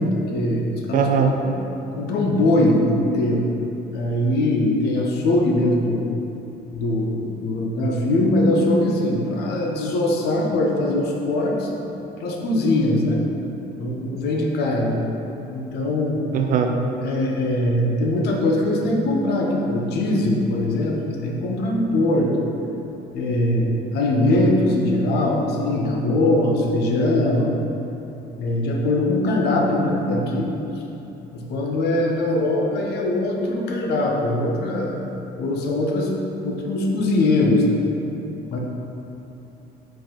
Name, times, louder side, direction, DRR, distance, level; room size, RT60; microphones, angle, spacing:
voice 1, 0.0-1.1 1.4-1.6 1.9-3.5 3.9-6.0 6.7-11.7 12.2-13.2 13.8-15.1 15.5-16.2 17.0-22.3 23.1-27.5 28.4-30.5 31.3-35.0 35.4-36.2 36.4-37.8 38.5-38.6, left 1 dB, 75° left, 0 dB, 0.6 m, -21 dB
voice 2, 0.9-1.4 16.3-16.8, right 6 dB, 55° right, 4 dB, 0.4 m, -19 dB
4.6 x 2.4 x 3.6 m, 3.0 s
cardioid pair, 110°, 17 cm